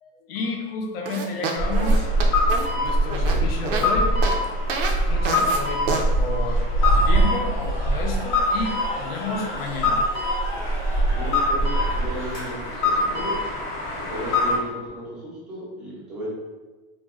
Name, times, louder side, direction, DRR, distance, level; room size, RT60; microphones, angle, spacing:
voice 1, 0.0-2.1 2.8-4.1 5.1-10.0, left 4 dB, 75° left, 1 dB, 0.7 m, -31 dB
sound 1, 1.1-3.9 4.2-4.4 4.7-4.9 5.3-5.6 5.9-6.0, right 4 dB, 65° right, 0.5 m, -28 dB
sound 2, 1.6-14.6, equal, 40° left, 0.7 m, -22 dB
Cheering / Crowd, 6.5-12.9, equal, 15° left, 0.9 m, -36 dB
voice 2, 11.1-13.4 14.0-16.3, right 1 dB, 5° right, -9 dB, 0.4 m, -34 dB
2.5 x 2.1 x 3.4 m, 1.2 s
supercardioid pair, 175°, 30 cm